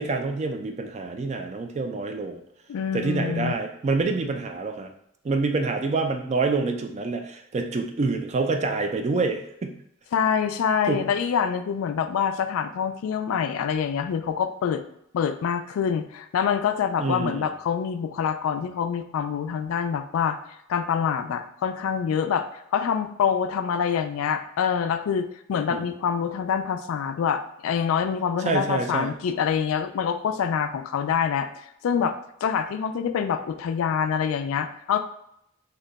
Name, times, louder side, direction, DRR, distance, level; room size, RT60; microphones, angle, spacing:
voice 1, 0.0-2.4 2.9-4.9 5.2-9.7 10.9-11.0 17.0-17.5 25.7-25.9 28.4-29.1, right 3 dB, 35° right, 5 dB, 0.3 m, -27 dB
voice 2, 2.7-3.5 10.1-14.8 15.1-20.4 20.7-31.5 31.8-32.1 32.4-35.0, left 7 dB, 80° left, 10 dB, 0.3 m, -26 dB
2.8 x 2.2 x 3.9 m, 0.75 s
head